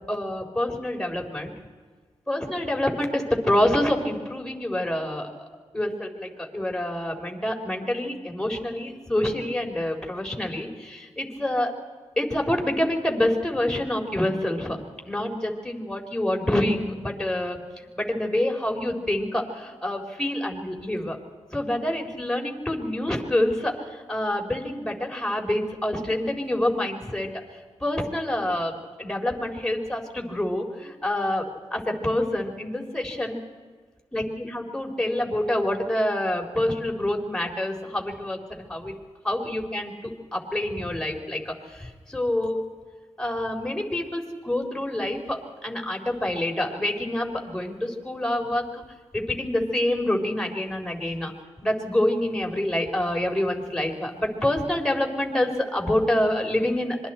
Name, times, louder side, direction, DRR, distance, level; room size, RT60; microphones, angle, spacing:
voice 1, 0.1-1.5 2.3-5.5 5.7-11.7 12.2-14.8 15.1-21.2 21.5-27.3 27.8-33.4 34.1-38.9 39.2-42.6 43.2-48.8 49.1-51.3 51.6-57.0, left 1 dB, 5° left, 1 dB, 4.2 m, -27 dB
26.0 x 23.0 x 4.5 m, 1.5 s
cardioid pair, 75°, 11 cm